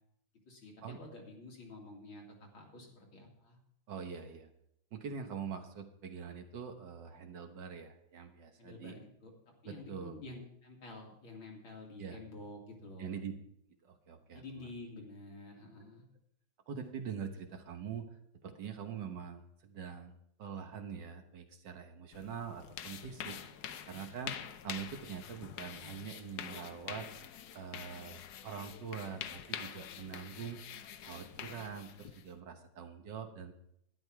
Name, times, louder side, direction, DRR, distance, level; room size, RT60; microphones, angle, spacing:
voice 1, 0.5-3.6 8.6-9.3 9.6-13.2 14.3-16.0, left 2 dB, 85° left, 0 dB, 3.2 m, -49 dB
voice 2, 3.9-4.5 4.9-9.0 9.7-10.2 12.0-12.2 13.0-13.3 13.8-14.7 16.7-18.1 18.4-20.1 20.4-23.4 23.9-24.4 24.6-27.1 27.5-30.6 31.0-33.5, right 7 dB, 60° right, 6 dB, 1.7 m, -44 dB
sound 1, 22.1-32.3, left 9 dB, 65° left, 1.1 m, -46 dB
12.0 x 10.5 x 4.6 m, 0.74 s
omnidirectional pair, 2.2 m